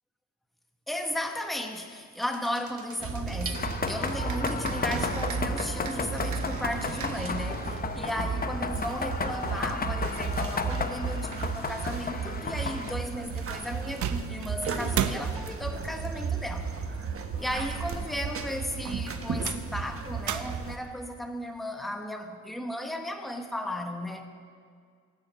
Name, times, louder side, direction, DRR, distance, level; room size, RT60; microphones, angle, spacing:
voice 1, 0.9-16.7 17.4-24.3, left 1 dB, ahead, 1.0 m, -35 dB
sound 1, 2.2-7.9 9.2-10.0 10.5-11.6 13.7-13.8 14.0-15.4 17.4-18.3 18.8-20.9, right 9 dB, 80° right, 0.7 m, -38 dB
sound 2, 3.0-20.8, right 5 dB, 50° right, 1.3 m, -34 dB
sound 3, 3.5-12.9, left 4 dB, 30° left, 0.7 m, -33 dB
18.5 x 7.3 x 8.0 m
wide cardioid pair, 135°, 29 cm